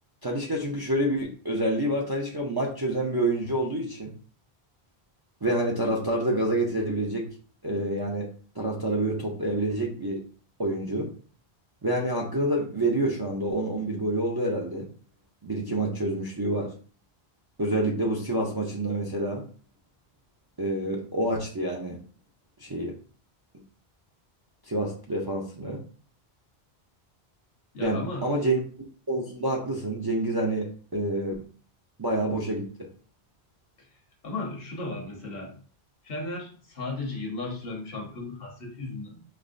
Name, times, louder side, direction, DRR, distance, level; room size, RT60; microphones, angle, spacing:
voice 1, 0.2-4.1 5.4-7.3 7.6-8.3 8.6-10.2 10.6-11.1 11.8-14.9 15.4-16.7 17.6-19.4 20.6-22.0 22.6-22.9 24.6-25.8 27.8-28.6 29.1-31.5 32.0-32.6, right 1 dB, 30° right, -3 dB, 0.4 m, -27 dB
voice 2, 27.7-28.3 34.2-35.6 36.0-39.2, left 2 dB, 65° left, 0 dB, 1.2 m, -35 dB
5.2 x 2.1 x 2.5 m, 0.41 s
omnidirectional pair, 1.1 m